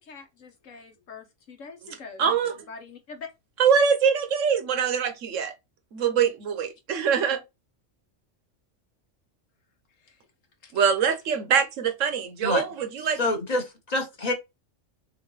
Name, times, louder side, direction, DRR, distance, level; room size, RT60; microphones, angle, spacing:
voice 1, 0.0-3.3 10.0-10.2 10.6-10.7, left 5 dB, 80° left, 1.5 m, -44 dB
voice 2, 2.2-2.5 3.6-5.5 5.9-7.4 10.7-13.2, right 6 dB, 80° right, 1.2 m, -23 dB
voice 3, 13.2-14.3, left 2 dB, 35° left, 1.2 m, -26 dB
6.4 x 2.6 x 3.1 m
omnidirectional pair, 1.3 m